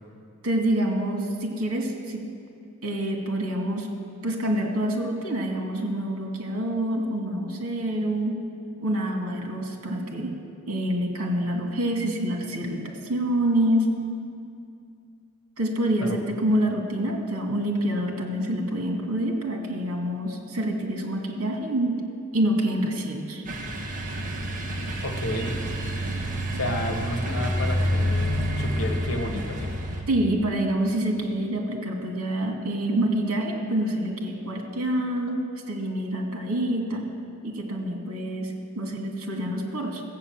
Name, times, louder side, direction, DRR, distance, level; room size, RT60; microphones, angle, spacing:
voice 1, 0.4-2.2 2.8-3.9 4.2-8.3 8.8-10.3 10.7-13.9 15.6-22.0 22.3-23.4 30.1-35.4 35.7-37.0 37.4-40.0, right 1 dB, 75° right, 1 dB, 2.4 m, -27 dB
sound 1, 23.4-30.0, equal, 35° right, 1.4 m, -28 dB
voice 2, 25.0-25.7 26.5-29.7, left 1 dB, 65° left, 3 dB, 1.5 m, -31 dB
15.0 x 8.5 x 7.3 m, 2.4 s
head